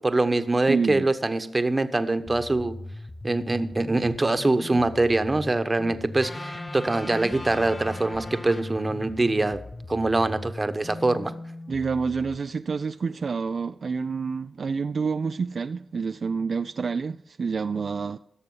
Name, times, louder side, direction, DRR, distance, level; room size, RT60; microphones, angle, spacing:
voice 1, 0.0-2.8 3.2-9.6 9.9-11.3, right 2 dB, 30° right, 1.1 m, -24 dB
voice 2, 0.7-1.1 11.7-18.2, right 5 dB, 65° right, 0.3 m, -28 dB
sound 1, 2.3-12.4, left 2 dB, 25° left, 0.9 m, -39 dB
sound 2, 6.2-9.4, left 2 dB, 45° left, 1.7 m, -41 dB
15.5 x 6.8 x 5.5 m
cardioid pair, 50°, 0 cm